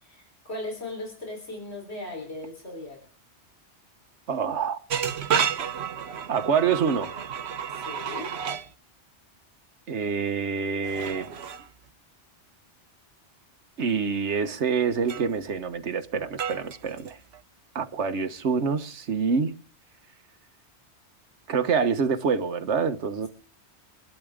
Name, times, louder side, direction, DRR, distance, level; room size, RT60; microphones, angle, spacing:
voice 1, 0.0-3.0 7.7-8.3, left 2 dB, 65° left, 4.3 m, -37 dB
voice 2, 4.3-4.8 6.3-7.1 9.9-11.3 13.8-17.2 17.7-19.5 21.5-23.3, right 6 dB, 85° right, 1.3 m, -26 dB
sound 1, 4.9-8.7 10.8-11.7 15.1-15.4 16.3-17.4, right 7 dB, 70° right, 1.1 m, -31 dB
25.5 x 12.0 x 3.6 m
omnidirectional pair, 1.2 m